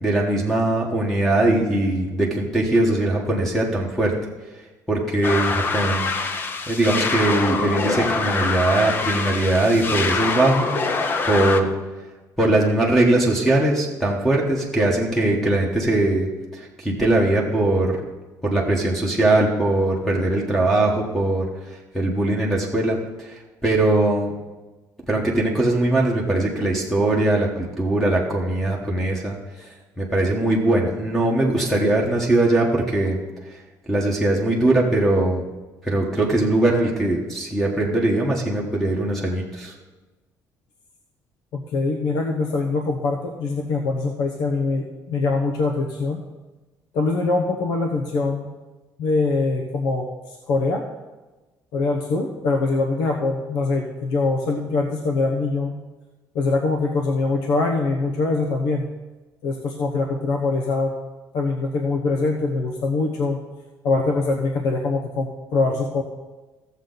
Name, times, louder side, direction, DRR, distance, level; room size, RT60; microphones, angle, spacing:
voice 1, 0.0-4.1 4.9-6.1 6.7-10.7 11.3-11.7 12.4-16.3 16.5-18.0 18.4-21.4 21.9-24.3 25.1-29.4 30.0-33.2 33.9-35.4 35.8-39.7, right 2 dB, 5° left, -1 dB, 1.2 m, -21 dB
sound 1, 5.2-11.6, left 4 dB, 30° left, 0.7 m, -25 dB
voice 2, 41.5-46.2 46.9-48.5 49.0-50.8 51.7-55.7 56.3-58.9 59.4-60.9 61.3-63.4 63.8-66.0, left 3 dB, 85° left, 2 dB, 1.0 m, -23 dB
15.0 x 7.3 x 3.9 m, 1.2 s
cardioid pair, 170°, 7 cm